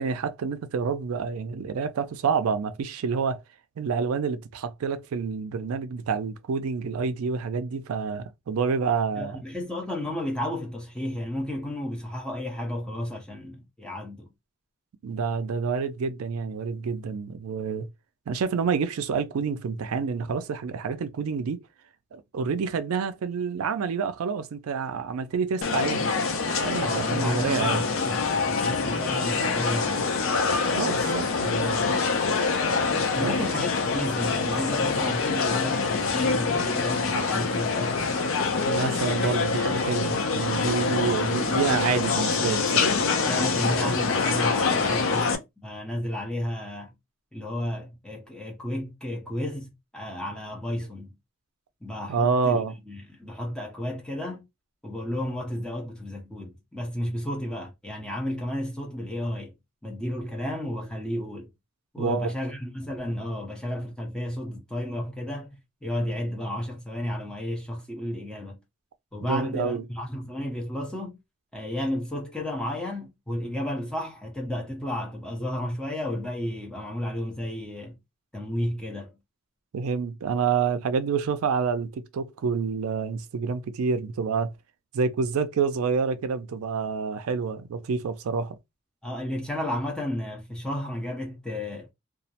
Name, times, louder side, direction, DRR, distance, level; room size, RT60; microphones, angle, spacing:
voice 1, 0.0-3.4 3.8-9.4 15.0-17.9 18.3-21.6 22.1-26.1 26.6-27.8 30.7-32.0 33.2-33.4 38.7-42.9 52.1-52.7 62.0-62.3 69.2-69.8 79.7-84.5 84.9-88.6, right 5 dB, 90° right, 0.4 m, -28 dB
voice 2, 9.2-14.3 26.8-30.2 33.2-38.0 41.2-41.3 43.3-46.9 47.3-51.1 51.8-54.4 54.8-59.5 59.8-61.5 61.9-68.6 69.1-71.2 71.5-78.0 78.3-79.1 89.0-91.9, left 1 dB, 5° left, 0.6 m, -32 dB
sound 1, 25.6-45.4, left 4 dB, 70° left, 0.5 m, -25 dB
2.3 x 2.0 x 2.7 m
head